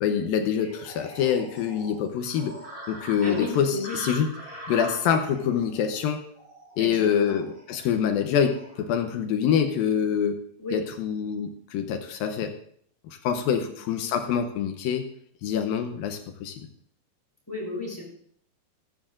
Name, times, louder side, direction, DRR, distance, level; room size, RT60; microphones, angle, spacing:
voice 1, 0.0-2.6 2.9-4.3 4.7-6.2 6.8-10.4 10.7-12.5 13.1-15.1 15.4-16.7, left 8 dB, 75° left, 6 dB, 2.2 m, -25 dB
sound 1, 0.6-8.8, right 1 dB, 30° right, 5.9 m, -42 dB
voice 2, 3.2-4.0 6.8-7.4 10.6-10.8 13.6-13.7 17.5-18.0, left 2 dB, 5° left, -2 dB, 3.5 m, -33 dB
14.5 x 14.0 x 2.5 m, 0.63 s
omnidirectional pair, 4.9 m